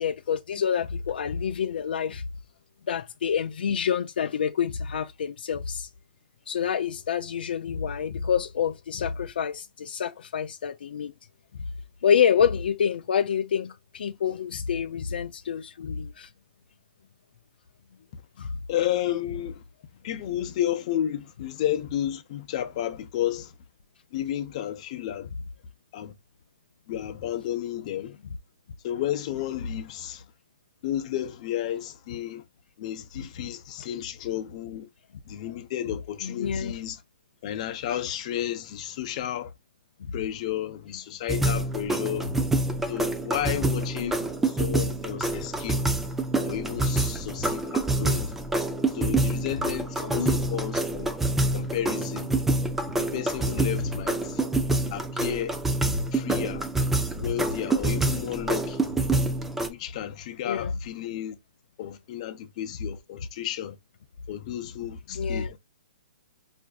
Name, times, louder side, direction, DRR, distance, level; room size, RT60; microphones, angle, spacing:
voice 1, 0.0-2.2 2.9-5.9 6.5-11.1 12.0-16.3 18.4-18.5 36.2-36.7 44.0-44.1 50.0-50.4 56.3-56.4 57.1-57.2 60.4-60.7 65.1-65.5, left 7 dB, 75° left, 0.3 m, -27 dB
voice 2, 18.7-19.6 20.0-23.5 24.1-25.3 25.9-26.1 26.9-28.2 28.8-30.2 30.8-32.4 32.8-34.9 35.3-37.0 37.4-39.5 40.1-42.3 42.9-45.8 46.4-48.3 48.9-51.1 51.5-52.3 53.0-54.4 54.9-55.6 56.1-56.7 57.2-58.9 59.7-61.4 61.8-63.8 64.3-65.6, left 11 dB, 40° left, 0.6 m, -32 dB
sound 1, 41.3-59.7, right 2 dB, 5° right, 0.3 m, -27 dB
4.6 x 2.6 x 2.2 m
hypercardioid pair, 155°, 5 cm